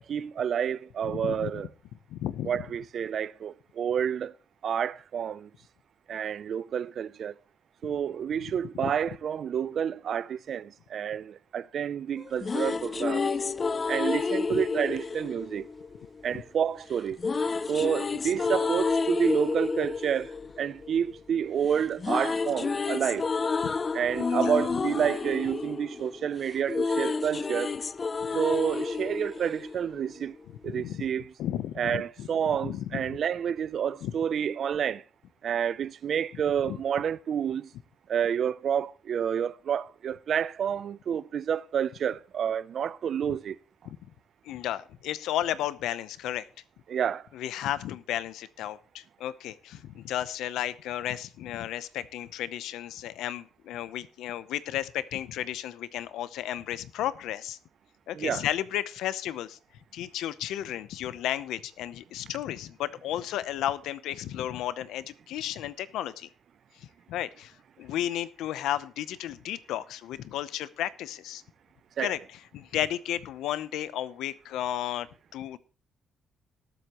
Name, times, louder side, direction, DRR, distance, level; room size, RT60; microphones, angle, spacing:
voice 1, 0.0-1.7 2.5-4.3 4.6-5.5 6.1-7.3 7.8-13.3 13.9-15.7 16.2-17.2 17.7-20.3 20.6-23.2 23.9-27.7 28.3-30.3 30.6-31.3 31.8-35.0 35.4-37.7 38.1-43.5 46.9-47.2 58.1-58.4 72.0-72.1, right 8 dB, 60° right, 0.4 m, -29 dB
voice 2, 1.0-1.6 2.1-2.7 8.8-8.9 14.5-14.6 16.3-16.4 23.6-23.7 24.3-24.5 30.6-31.1 31.4-32.3 32.6-33.2 34.0-34.1 36.3-36.4 36.7-36.8 43.3-43.4 43.8-44.0 44.4-46.5 47.3-57.6 58.1-59.6 59.9-66.3 66.8-71.4 72.0-75.6, left 12 dB, 85° left, 0.7 m, -33 dB
sound 1, 12.2-16.3 17.2-21.4 21.7-30.2, left 4 dB, 35° left, 0.5 m, -30 dB
19.5 x 8.0 x 3.0 m
cardioid pair, 90°, 0 cm